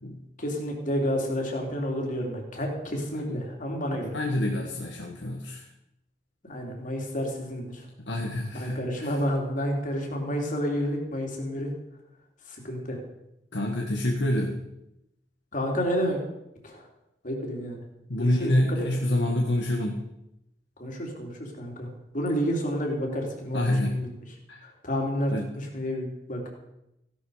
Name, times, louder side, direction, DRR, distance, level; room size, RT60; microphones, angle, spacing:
voice 1, 0.4-4.1 6.5-7.9 8.5-11.7 12.5-13.0 15.5-16.2 16.6-16.9 17.2-17.8 18.2-18.8 20.8-24.1 24.6-26.5, equal, 50° left, 1 dB, 3.3 m, -30 dB
voice 2, 3.9-5.6 8.0-9.1 13.5-14.6 18.1-20.0 23.5-24.0 24.5-24.6 25.3-25.4, left 1 dB, 80° left, 1 dB, 1.6 m, -27 dB
16.0 x 11.5 x 5.0 m, 0.86 s
head